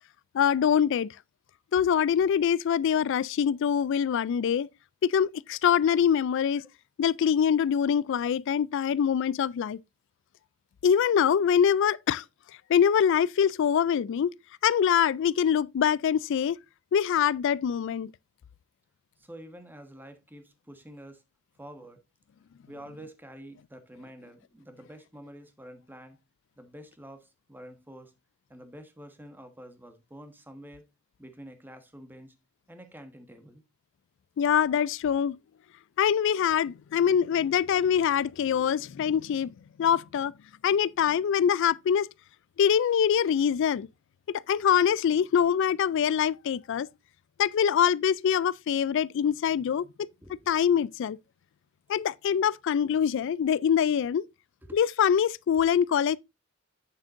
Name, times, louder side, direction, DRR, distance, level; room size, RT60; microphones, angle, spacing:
voice 1, 0.3-1.1 1.7-4.7 5.0-6.6 7.0-9.8 10.8-12.2 12.7-14.3 14.6-16.6 16.9-18.1 34.4-35.4 36.0-39.5 39.8-40.3 40.6-42.1 42.6-43.9 44.5-46.9 47.4-50.1 50.5-51.2 51.9-54.3 54.7-56.2, left 8 dB, 60° left, 0.3 m, -24 dB
voice 2, 19.2-21.2 21.6-22.0 22.7-26.2 26.6-28.1 28.5-30.8 31.2-32.3 32.7-33.6 50.0-50.5 54.6-54.8, right 1 dB, 10° right, 1.3 m, -48 dB
8.9 x 7.3 x 2.5 m
head